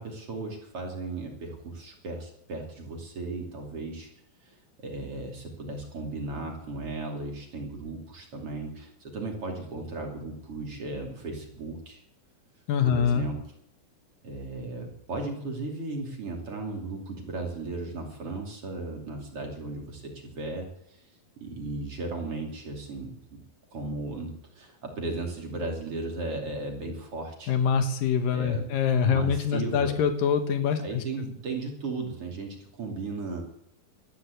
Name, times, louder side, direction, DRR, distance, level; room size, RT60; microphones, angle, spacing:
voice 1, 0.0-4.1 4.4-12.0 12.8-13.4 14.2-20.7 21.4-23.4 23.7-27.5 28.3-28.7 29.0-29.9 30.8-33.4, right 3 dB, 40° right, 1 dB, 3.4 m, -36 dB
voice 2, 12.7-13.2 27.5-31.0, left 7 dB, 75° left, 7 dB, 2.9 m, -24 dB
13.0 x 9.8 x 8.3 m, 0.73 s
omnidirectional pair, 4.1 m